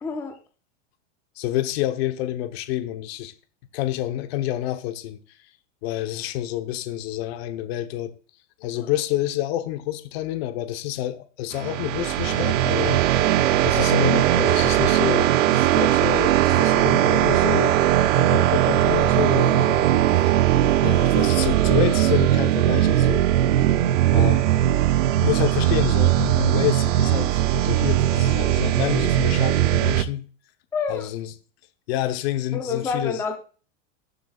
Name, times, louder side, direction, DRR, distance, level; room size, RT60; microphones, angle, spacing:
voice 1, 0.0-0.3 30.7-31.1 32.5-33.4, left 5 dB, 5° left, 0.6 m, -27 dB
voice 2, 1.4-3.3 3.7-5.2 5.8-8.1 8.6-13.0 13.6-17.8 18.2-19.9 20.2-20.4 20.8-23.3 24.1-24.5 25.2-30.3 30.9-31.3 31.9-33.2, left 14 dB, 55° left, 1.0 m, -28 dB
sound 1, 11.5-30.0, right 12 dB, 85° right, 0.8 m, -19 dB
18.5 x 7.0 x 2.4 m
supercardioid pair, 155°, 37 cm